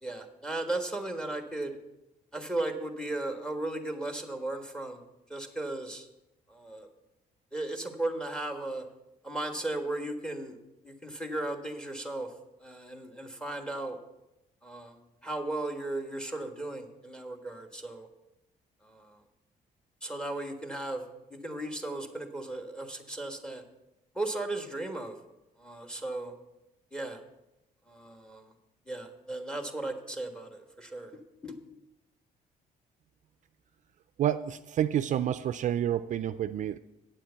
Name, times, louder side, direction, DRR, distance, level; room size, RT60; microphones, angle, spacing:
voice 1, 0.0-1.8 2.3-5.0 5.3-6.1 6.5-6.9 7.5-8.8 9.2-10.6 10.8-12.3 12.6-14.0 14.6-18.1 18.8-19.2 20.0-21.0 21.3-23.6 24.1-25.2 25.6-26.3 26.9-27.2 27.9-28.5 28.9-31.1 31.4-31.6, right 2 dB, 5° left, 5 dB, 1.4 m, -36 dB
voice 2, 34.2-36.8, right 10 dB, 55° right, 13 dB, 0.4 m, -29 dB
8.9 x 7.5 x 6.9 m, 0.93 s
cardioid pair, 110°, 16 cm